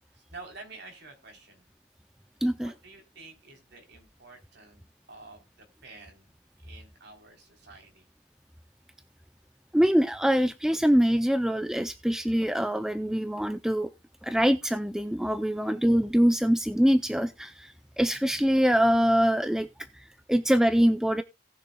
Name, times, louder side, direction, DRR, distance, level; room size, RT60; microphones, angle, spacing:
voice 1, 0.1-1.7 2.6-4.8 5.1-6.3 6.6-8.1 15.6-15.9, right 3 dB, 55° right, 3.6 m, -49 dB
voice 2, 2.4-2.7 9.7-13.9 14.2-19.7 19.9-21.2, equal, 5° right, 0.4 m, -24 dB
18.5 x 6.6 x 2.3 m
head